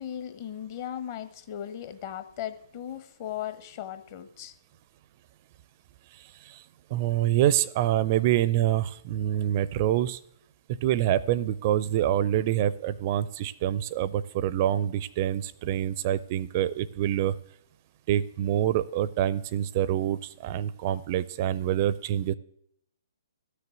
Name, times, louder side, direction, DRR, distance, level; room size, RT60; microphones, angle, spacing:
voice 1, 0.0-4.5, left 10 dB, 35° left, 10 dB, 1.1 m, -37 dB
voice 2, 6.2-6.6 6.9-10.2 10.8-17.4 18.1-22.3, right 12 dB, 35° right, 18 dB, 0.5 m, -26 dB
13.0 x 6.7 x 9.2 m, 0.71 s
figure-of-eight pair, 125°, 2 cm